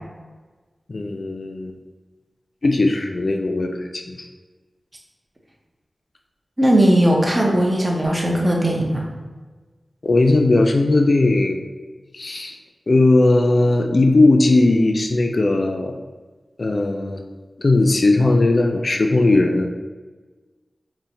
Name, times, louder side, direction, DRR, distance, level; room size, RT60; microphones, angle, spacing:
voice 1, 0.9-1.8 2.6-4.2 10.0-11.6 12.1-12.6 12.9-15.9 16.6-17.2 17.6-19.7, left 2 dB, 60° left, 4 dB, 0.3 m, -18 dB
voice 2, 6.6-9.1, right 1 dB, 30° right, -1 dB, 0.7 m, -18 dB
4.1 x 2.1 x 2.6 m, 1.3 s
cardioid pair, 45°, 0 cm